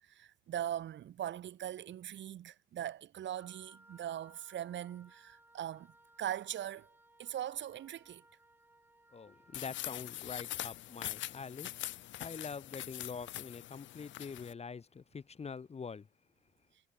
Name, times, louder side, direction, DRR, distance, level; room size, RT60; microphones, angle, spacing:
voice 1, 0.0-5.9 6.2-6.9 7.2-8.2, right 11 dB, 65° right, 1.9 m, -40 dB
Wind instrument woodwind instrument, 3.4-9.9, right 1 dB, 10° right, 7.3 m, -63 dB
voice 2, 9.1-11.7 12.2-16.1, left 5 dB, 30° left, 1.0 m, -45 dB
sound 1, 9.5-14.5, left 14 dB, 70° left, 0.5 m, -43 dB
cardioid pair, 90°, 20 cm